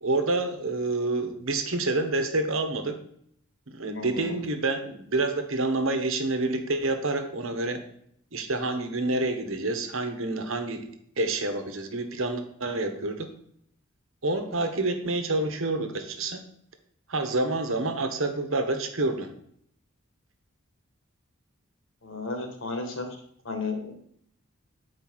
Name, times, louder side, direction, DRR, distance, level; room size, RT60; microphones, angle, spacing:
voice 1, 0.0-3.0 3.7-7.8 8.3-10.9 11.2-13.3 14.2-16.4 17.1-19.3, right 2 dB, 65° right, 7 dB, 1.3 m, -28 dB
voice 2, 3.9-4.3 22.0-23.1 23.5-23.9, left 3 dB, 60° left, 4 dB, 1.8 m, -33 dB
8.7 x 4.8 x 6.3 m, 0.66 s
head